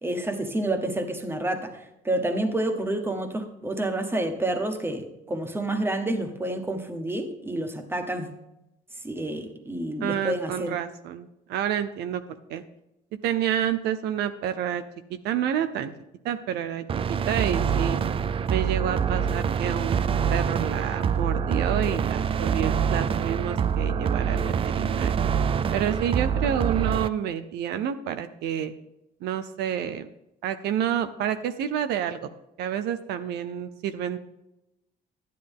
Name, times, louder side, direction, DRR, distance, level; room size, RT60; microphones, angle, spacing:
voice 1, 0.0-8.3 9.0-10.8, right 1 dB, 15° right, 6 dB, 1.4 m, -29 dB
voice 2, 10.0-12.2 12.5-12.6 13.2-14.8 15.1-15.9 16.2-16.8 17.1-18.0 18.5-25.2 25.7-28.7 29.2-30.1 30.4-32.3 32.6-34.2, right 9 dB, 80° right, 10 dB, 0.7 m, -29 dB
sound 1, 16.9-27.1, right 7 dB, 35° right, 0.4 m, -25 dB
11.5 x 10.0 x 3.7 m, 0.88 s
cardioid pair, 110°, 17 cm